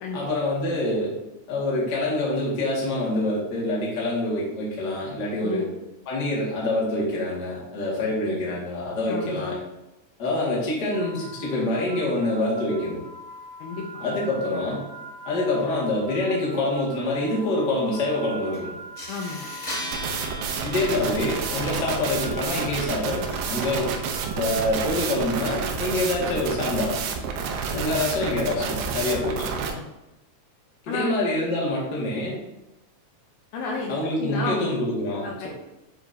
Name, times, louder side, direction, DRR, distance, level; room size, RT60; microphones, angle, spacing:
voice 1, 0.1-1.1 1.5-5.6 6.0-9.6 10.2-13.0 14.0-14.8 15.2-18.7 20.6-23.9 24.4-26.9 27.7-29.4 30.8-32.3 33.9-35.5, left 2 dB, 45° left, -5 dB, 1.4 m, -26 dB
voice 2, 9.1-9.5 13.6-13.9 19.1-19.5 27.7-28.4 29.1-29.9 30.9-31.1 33.5-34.7 35.2-35.5, left 4 dB, 80° left, -1 dB, 2.4 m, -32 dB
sound 1, 10.9-26.0, right 2 dB, 60° right, 3.3 m, -42 dB
sound 2, 18.5-18.6 18.9-23.9, equal, 30° left, 1.7 m, -38 dB
sound 3, 19.9-29.7, right 6 dB, 80° right, 2.7 m, -29 dB
9.5 x 4.3 x 2.7 m, 0.97 s
omnidirectional pair, 4.9 m